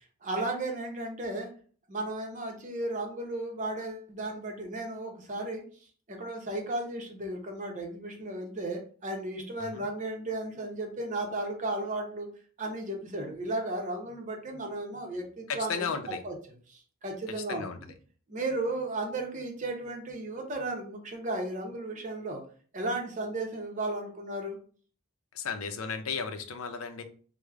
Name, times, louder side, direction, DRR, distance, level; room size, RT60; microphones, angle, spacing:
voice 1, 0.2-1.5 1.9-5.6 6.1-12.3 12.6-15.9 16.2-16.3 16.7-17.7 18.3-22.4 22.7-24.6, right 2 dB, 35° right, 2 dB, 0.7 m, -34 dB
voice 2, 15.5-16.2 17.3-17.9 25.3-27.0, left 5 dB, 80° left, 8 dB, 0.5 m, -35 dB
4.7 x 2.1 x 2.3 m, 0.43 s
head